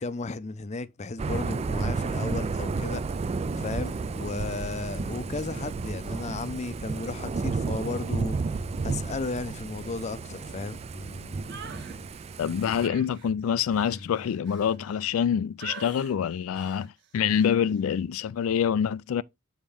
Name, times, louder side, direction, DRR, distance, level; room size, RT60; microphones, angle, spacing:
voice 1, 0.0-10.8, left 3 dB, 35° left, 0.5 m, -35 dB
Thunder / Rain, 1.2-12.9, right 4 dB, 30° right, 0.3 m, -32 dB
sound 1, 3.4-15.3, left 2 dB, 70° left, 0.7 m, -48 dB
sound 2, 11.5-12.0 12.8-15.2 15.6-16.1 16.5-16.9 17.3-17.5, right 6 dB, 60° right, 1.3 m, -45 dB
voice 2, 12.4-19.2, left 8 dB, 85° left, 0.3 m, -26 dB
7.2 x 4.4 x 3.5 m
head